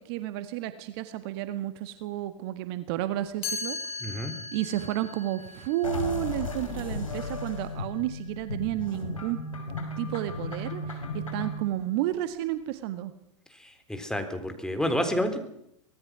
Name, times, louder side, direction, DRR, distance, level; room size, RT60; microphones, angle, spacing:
voice 1, 0.1-3.8 4.5-9.4 10.0-13.1, right 14 dB, 50° right, 11 dB, 1.7 m, -31 dB
Chime, 3.4-9.3, left 3 dB, 35° left, 6.9 m, -40 dB
voice 2, 4.0-4.3 13.9-15.4, equal, 5° left, 7 dB, 3.8 m, -29 dB
sound 1, 5.8-11.6, left 2 dB, 85° left, 5.2 m, -35 dB
24.5 x 19.0 x 6.3 m, 0.77 s
figure-of-eight pair, 95°, 17 cm